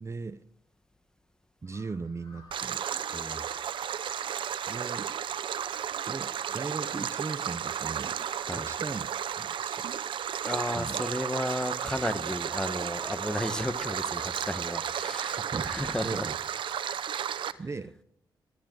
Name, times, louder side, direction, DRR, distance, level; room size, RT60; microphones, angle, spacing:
voice 1, 0.0-0.4 1.6-2.8 4.7-5.1 6.1-8.2 8.5-9.1 9.4-9.9 10.7-11.0 15.3-16.4 17.6-17.9, right 4 dB, 35° right, 14 dB, 0.7 m, -38 dB
Crow, 1.6-17.0, left 3 dB, 70° left, 6.6 m, -57 dB
Stream, 2.5-17.5, right 9 dB, 80° right, 0.7 m, -33 dB
voice 2, 3.1-3.4 8.4-8.7 10.4-16.3, left 1 dB, 10° left, 11 dB, 1.3 m, -33 dB
18.5 x 13.0 x 3.9 m, 0.73 s
cardioid pair, 75°, 8 cm